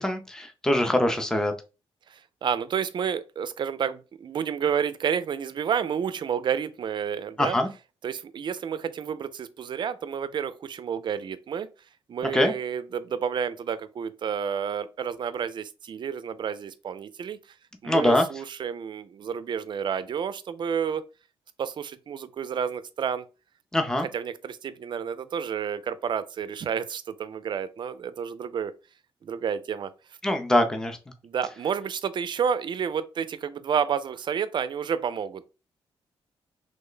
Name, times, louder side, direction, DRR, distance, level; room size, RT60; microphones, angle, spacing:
voice 1, 0.0-1.5 7.4-7.7 12.3-12.5 17.8-18.2 23.7-24.1 30.2-31.0, left 1 dB, 5° left, 0.5 m, -23 dB
voice 2, 2.1-7.6 8.0-11.7 12.1-17.4 17.8-21.0 21.6-23.2 24.1-28.7 29.2-29.9 31.2-35.5, right 7 dB, 50° right, 0.4 m, -30 dB
3.1 x 2.1 x 3.7 m
cardioid pair, 85°, 10 cm